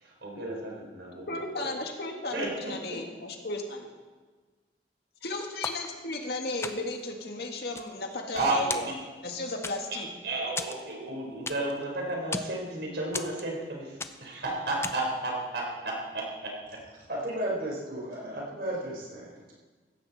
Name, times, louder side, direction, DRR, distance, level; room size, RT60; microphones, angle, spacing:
voice 1, 0.0-1.3 1.6-1.7 2.3-3.0 8.3-8.9 9.9-10.0 10.2-16.5, right 2 dB, 80° right, -1 dB, 4.4 m, -32 dB
voice 2, 1.3-3.9 5.2-8.9 9.2-10.1, left 2 dB, 65° left, 2 dB, 2.0 m, -35 dB
sound 1, 5.6-6.3 6.6-7.1 7.5-8.4 8.7-9.3 9.6-10.1 10.6-11.8 12.1-12.6 13.1-13.7 14.0-14.4 14.8-15.2, left 3 dB, 15° left, 0.5 m, -37 dB
voice 3, 17.1-19.5, right 1 dB, 55° right, -4 dB, 4.8 m, -34 dB
15.5 x 14.0 x 4.3 m, 1.4 s
head